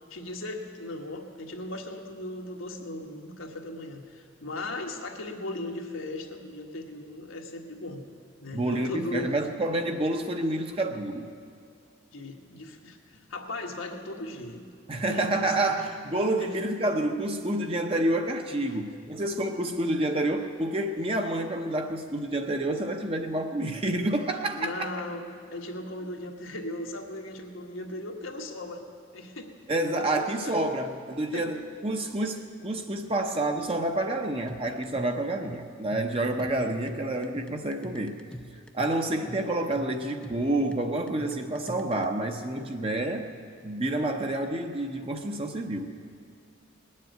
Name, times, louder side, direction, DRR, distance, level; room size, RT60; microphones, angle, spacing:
voice 1, 0.1-8.0 8.4-9.3 12.1-14.6 14.9-15.5 16.4-16.5 18.7-18.8 24.5-28.9 29.1-29.5 29.8-30.6 31.3-31.6, left 2 dB, 85° left, 1 dB, 1.6 m, -38 dB
voice 2, 8.5-11.3 14.9-24.9 29.7-38.1 38.7-43.3 43.6-45.9, right 1 dB, 30° right, 4 dB, 0.7 m, -28 dB
sound 1, 34.5-42.1, equal, 5° left, 0.4 m, -44 dB
19.5 x 7.5 x 9.2 m, 2.4 s
head